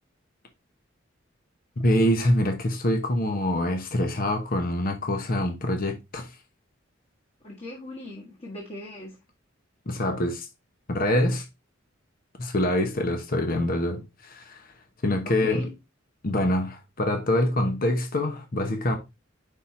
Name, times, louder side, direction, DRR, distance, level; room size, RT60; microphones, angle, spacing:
voice 1, 1.8-6.3 9.9-10.5 10.9-11.4 12.4-14.7 15.0-15.7 16.2-19.0, left 1 dB, 50° left, 0.9 m, -25 dB
voice 2, 7.4-9.2 15.2-15.7, left 1 dB, 30° left, 1.5 m, -39 dB
5.5 x 4.1 x 4.2 m
head